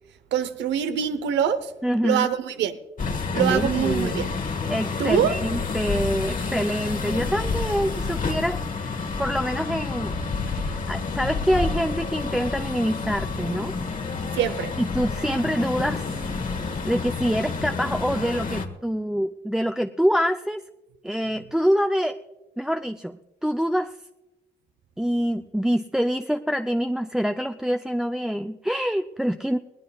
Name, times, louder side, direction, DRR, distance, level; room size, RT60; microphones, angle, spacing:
voice 1, 0.3-1.7 2.0-2.8 3.3-4.3 5.0-5.4 14.3-14.7, right 9 dB, 90° right, 0.8 m, -24 dB
voice 2, 1.8-2.3 3.4-4.3 4.7-10.1 10.6-13.7 14.8-16.1 16.8-20.6 21.0-22.2 22.6-23.9 25.0-29.6, equal, 5° right, 0.5 m, -25 dB
sound 1, 3.0-18.7, left 4 dB, 50° left, 1.5 m, -29 dB
20.0 x 18.0 x 2.4 m
supercardioid pair, 60°, 18 cm